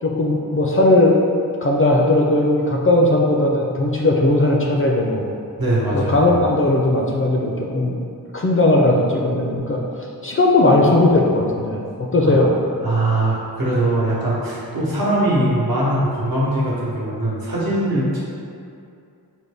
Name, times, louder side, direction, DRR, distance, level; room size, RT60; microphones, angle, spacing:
voice 1, 0.0-1.2 1.6-5.2 5.9-8.0 8.3-9.8 10.2-12.5, left 2 dB, 35° left, -2 dB, 0.4 m, -17 dB
voice 2, 5.6-6.3 12.2-12.4 12.8-18.2, right 1 dB, 65° right, -7 dB, 1.0 m, -21 dB
3.9 x 2.1 x 3.3 m, 2.5 s
wide cardioid pair, 70°, 38 cm